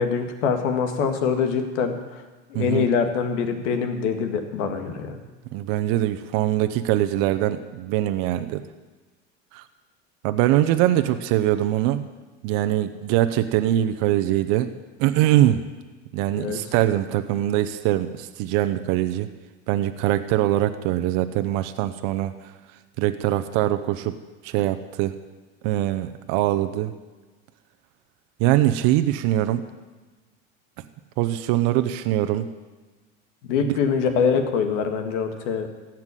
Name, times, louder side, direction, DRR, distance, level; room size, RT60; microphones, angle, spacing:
voice 1, 0.0-2.2 2.5-5.2 16.4-16.6 33.5-35.7, left 6 dB, 80° left, 6 dB, 2.0 m, -24 dB
voice 2, 2.5-2.9 5.5-8.6 9.5-9.6 10.2-12.1 12.4-14.7 15.0-15.6 16.1-19.3 19.7-22.5 23.0-24.1 24.4-25.1 25.6-26.9 28.4-29.7 31.2-32.5 33.6-33.7, right 13 dB, 65° right, 10 dB, 0.9 m, -22 dB
15.5 x 6.0 x 9.8 m, 1.3 s
supercardioid pair, 100°, 36 cm